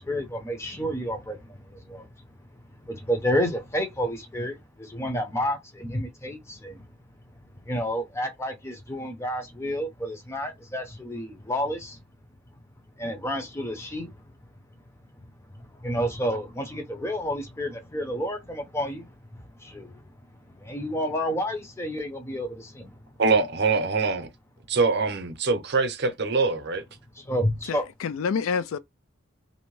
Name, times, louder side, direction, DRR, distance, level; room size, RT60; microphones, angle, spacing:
voice 1, 0.0-2.1 2.8-6.8 7.6-12.0 13.0-14.1 15.7-20.0 20.6-22.9 27.2-27.8, equal, 15° left, 0.5 m, -30 dB
voice 2, 23.2-24.3 24.7-26.8, right 4 dB, 55° right, 0.6 m, -23 dB
voice 3, 27.7-28.8, left 6 dB, 85° left, 0.3 m, -28 dB
2.6 x 2.1 x 3.0 m
head